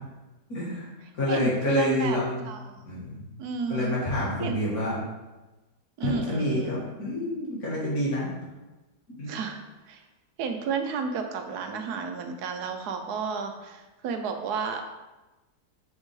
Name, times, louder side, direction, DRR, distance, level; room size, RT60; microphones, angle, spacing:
voice 1, 0.5-0.9 1.1-2.4 2.8-3.3 3.7-5.0 6.0-8.3 9.2-9.3, left 1 dB, 65° left, -6 dB, 2.4 m, -28 dB
voice 2, 1.3-2.2 2.4-2.8 3.4-4.0 4.4-4.6 6.0-6.8 9.3-9.6 9.9-10.0 10.4-14.8, right 5 dB, 80° right, 5 dB, 1.2 m, -31 dB
7.4 x 4.6 x 3.2 m, 1.1 s
omnidirectional pair, 1.7 m